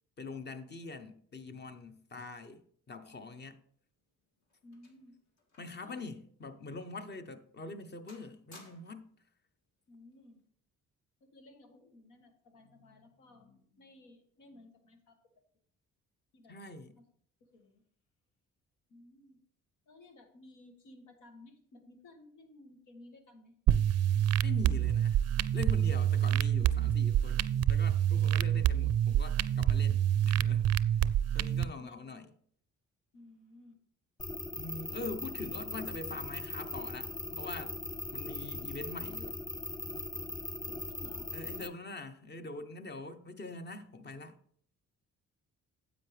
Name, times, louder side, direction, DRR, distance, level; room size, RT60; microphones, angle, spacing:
voice 1, 0.2-2.6 2.9-3.6 5.6-9.1 16.5-17.0 24.4-25.2 25.5-30.7 31.3-32.3 34.6-37.8 38.1-39.4 41.3-44.4, left 3 dB, 35° left, 0.9 m, -44 dB
sound 1, 3.8-5.9 6.2-6.4 7.0-7.1 7.6-7.8 8.1-9.1 10.1-10.4, left 2 dB, 60° left, 2.6 m, -59 dB
voice 2, 4.6-5.2 5.8-6.0 9.9-10.4 11.2-15.2 16.3-16.5 17.4-17.8 18.9-19.4 19.9-23.5 28.5-28.8 31.6-32.3 33.1-33.8 40.7-41.3, left 2 dB, 90° left, 1.5 m, -57 dB
sound 2, 23.7-31.7, right 10 dB, 55° right, 0.4 m, -27 dB
sound 3, 34.2-41.7, left 2 dB, 15° left, 0.5 m, -40 dB
9.6 x 7.9 x 3.3 m
cardioid pair, 90°, 30 cm